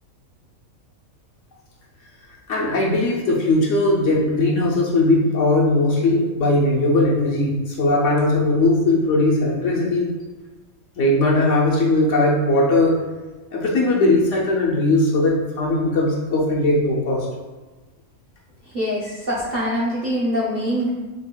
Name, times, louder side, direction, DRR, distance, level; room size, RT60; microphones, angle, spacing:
voice 1, 2.5-10.1 11.0-13.0 13.5-17.3, left 2 dB, 65° left, -3 dB, 0.9 m, -19 dB
voice 2, 18.7-20.9, equal, 40° right, -8 dB, 0.7 m, -23 dB
5.1 x 2.3 x 2.3 m, 1.3 s
omnidirectional pair, 1.5 m